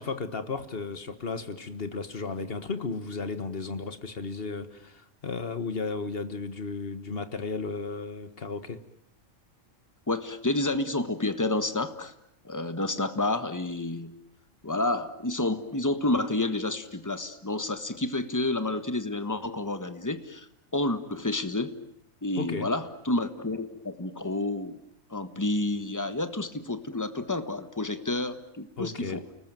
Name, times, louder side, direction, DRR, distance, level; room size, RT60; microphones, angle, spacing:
voice 1, 0.0-8.8 22.4-22.7 28.8-29.2, left 4 dB, 45° left, 10 dB, 1.8 m, -34 dB
voice 2, 10.1-12.1 12.4-14.2 14.6-20.5 20.7-21.8 22.2-24.8 25.1-29.2, left 2 dB, 15° left, 10 dB, 1.4 m, -29 dB
29.5 x 19.5 x 9.2 m, 0.77 s
omnidirectional pair, 1.4 m